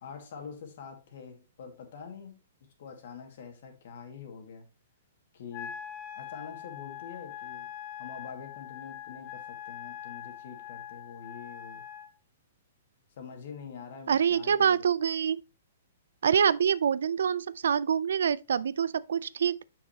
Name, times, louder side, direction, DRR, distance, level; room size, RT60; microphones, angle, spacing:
voice 1, 0.0-2.4 2.8-4.7 5.3-5.7 6.2-7.7 8.0-11.8 13.2-14.9, left 6 dB, 65° left, 2.0 m, -45 dB
Wind instrument woodwind instrument, 5.5-12.1, left 9 dB, 35° left, 0.6 m, -43 dB
voice 2, 14.1-15.4 16.2-19.6, right 7 dB, 80° right, 0.4 m, -26 dB
7.1 x 6.0 x 2.8 m
hypercardioid pair, 145°, 0 cm